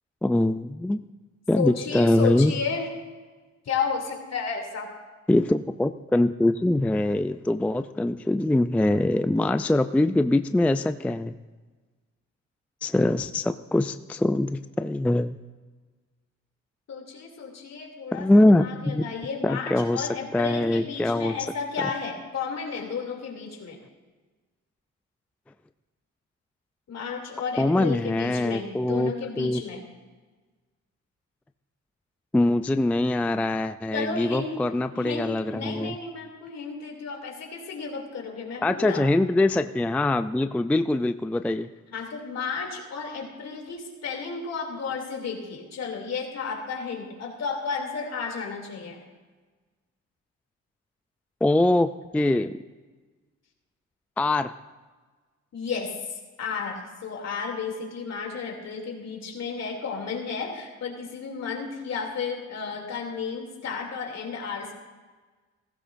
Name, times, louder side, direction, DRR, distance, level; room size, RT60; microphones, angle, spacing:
voice 1, 0.2-1.0 1.5-2.5 5.3-11.3 12.8-15.4 18.1-19.1 19.4-21.3 27.6-29.6 32.3-36.0 38.6-41.7 51.4-52.6 54.2-54.5, left 1 dB, 5° left, 10 dB, 0.3 m, -23 dB
voice 2, 1.6-2.9 3.6-4.9 16.9-23.8 26.9-29.8 33.9-34.6 34.9-39.1 41.9-49.0 55.5-55.9 56.4-64.7, left 5 dB, 60° left, 2 dB, 2.9 m, -32 dB
16.5 x 15.0 x 2.6 m, 1.3 s
cardioid pair, 90°, 30 cm